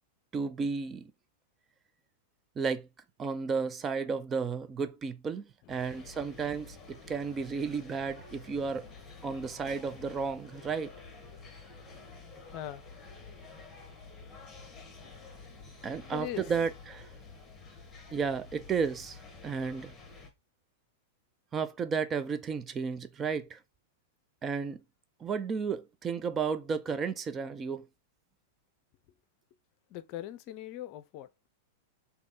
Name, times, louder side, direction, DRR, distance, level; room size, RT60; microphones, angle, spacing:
voice 1, 0.3-1.1 2.6-2.9 3.2-8.9 9.2-10.9 15.8-17.1 18.1-19.2 19.4-19.9 21.5-23.6 24.4-24.8 25.2-27.8, right 5 dB, 25° right, 0.5 m, -33 dB
voice 2, 5.6-6.0 8.5-8.8 11.8-13.4 16.1-16.5 29.9-31.3, left 13 dB, 50° left, 0.5 m, -43 dB
sound 1, 5.7-20.3, left 4 dB, 15° left, 1.5 m, -50 dB
3.5 x 2.8 x 3.9 m
hypercardioid pair, 110°, 0 cm